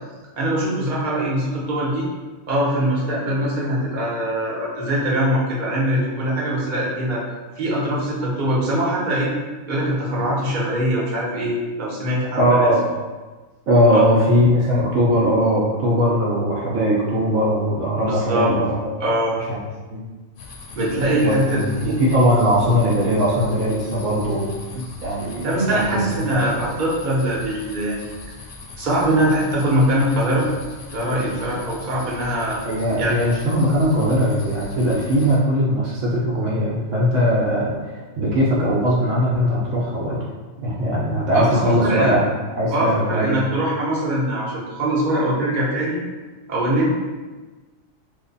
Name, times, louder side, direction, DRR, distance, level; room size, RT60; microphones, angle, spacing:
voice 1, 0.4-2.1 2.5-7.2 7.6-9.3 9.7-12.7 13.9-14.0 18.1-18.5 19.0-19.4 20.7-22.0 25.4-28.2 28.8-30.5 30.9-32.6 33.0-33.1 41.3-42.1 42.7-46.0 46.5-46.9, right 1 dB, 40° right, -5 dB, 0.9 m, -22 dB
voice 2, 12.4-12.9 13.7-18.9 19.4-19.6 19.9-20.0 21.2-24.5 24.7-26.7 32.6-37.7 38.2-40.2 40.6-42.2 42.5-43.4, equal, 70° right, -5 dB, 0.9 m, -20 dB
sound 1, 20.4-35.4, left 3 dB, 70° left, 0.9 m, -40 dB
3.2 x 2.1 x 3.9 m, 1.3 s
omnidirectional pair, 1.4 m